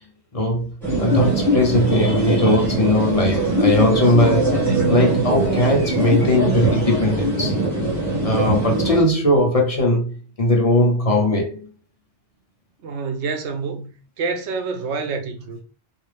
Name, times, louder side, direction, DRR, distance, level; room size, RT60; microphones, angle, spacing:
voice 1, 0.3-0.7 1.0-7.5 8.2-11.6, left 1 dB, 40° left, 0.7 m, -19 dB
sound 1, 0.8-9.0, right 1 dB, ahead, 1.5 m, -21 dB
voice 2, 12.8-13.9 14.2-15.6, right 4 dB, 85° right, 1.0 m, -27 dB
3.4 x 2.5 x 3.2 m
omnidirectional pair, 1.1 m